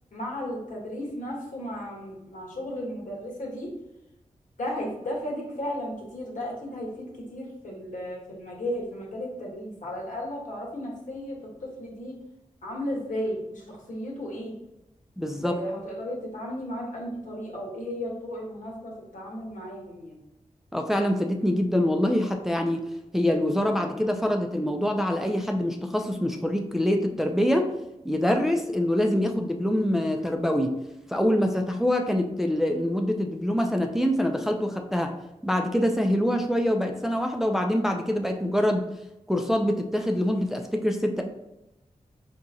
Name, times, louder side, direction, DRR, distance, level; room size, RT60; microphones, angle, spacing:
voice 1, 0.1-3.7 4.6-12.1 12.6-14.5 15.4-20.2, equal, 90° left, -2 dB, 1.3 m, -34 dB
voice 2, 15.2-15.6 20.7-22.9 23.1-27.7 28.0-30.7 31.1-35.1 35.4-38.8 39.3-41.2, left 1 dB, 5° right, 3 dB, 0.4 m, -25 dB
4.8 x 2.8 x 2.6 m, 0.91 s
wide cardioid pair, 115°, 13 cm